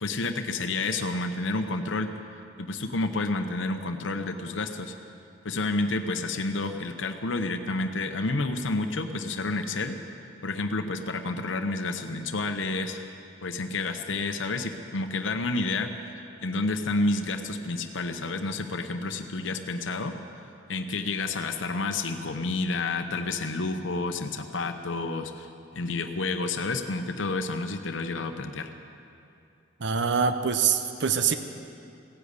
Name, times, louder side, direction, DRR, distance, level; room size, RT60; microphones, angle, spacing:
voice 1, 0.0-2.1 2.6-4.9 5.4-10.0 10.4-13.0 13.4-15.9 16.4-20.2 20.7-25.5 25.7-28.7, left 3 dB, 80° left, 6 dB, 0.8 m, -30 dB
voice 2, 29.8-31.4, right 6 dB, 65° right, 9 dB, 0.7 m, -24 dB
16.5 x 10.0 x 8.2 m, 2.6 s
head